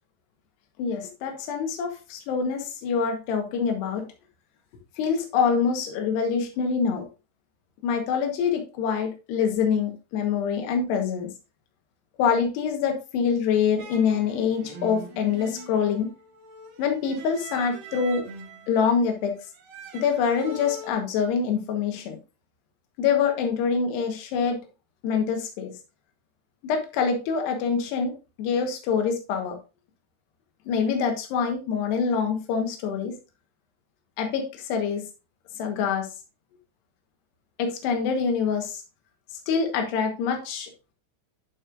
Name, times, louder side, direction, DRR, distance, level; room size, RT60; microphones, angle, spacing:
voice 1, 0.8-4.0 5.0-7.1 7.8-11.3 12.2-16.1 16.8-18.2 18.7-19.4 19.9-22.2 23.0-24.6 25.0-25.7 26.6-29.6 30.7-33.1 34.2-35.0 35.6-36.1 37.6-38.8 39.5-40.7, left 6 dB, 70° left, 4 dB, 3.3 m, -25 dB
sound 1, 13.8-20.9, right 2 dB, 60° right, 2.9 m, -42 dB
11.5 x 5.4 x 2.5 m, 0.31 s
omnidirectional pair, 5.2 m